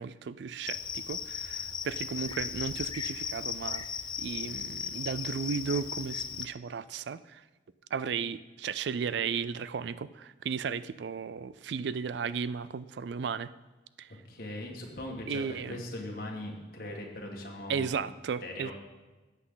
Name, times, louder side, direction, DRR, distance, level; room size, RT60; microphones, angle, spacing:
voice 1, 0.0-3.8 4.2-7.4 7.9-13.5 14.0-14.1 15.3-15.8 17.7-18.7, right 6 dB, 70° right, 16 dB, 0.4 m, -35 dB
Cricket, 0.7-6.5, left 7 dB, 25° left, 0.3 m, -36 dB
voice 2, 14.3-17.9 18.4-18.7, left 1 dB, 50° left, 0 dB, 1.8 m, -40 dB
13.5 x 8.3 x 3.9 m, 1.2 s
head